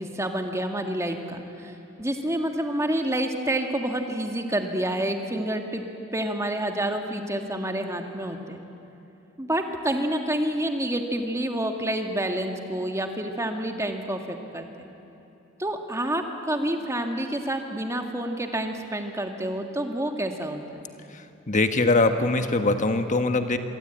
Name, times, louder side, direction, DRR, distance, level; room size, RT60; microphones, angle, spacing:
voice 1, 0.0-5.8 6.1-8.6 9.4-14.9 15.6-20.8, right 1 dB, 15° right, 4 dB, 1.9 m, -28 dB
voice 2, 21.5-23.6, left 2 dB, 35° left, 7 dB, 1.4 m, -22 dB
26.5 x 23.0 x 9.1 m, 2.9 s
head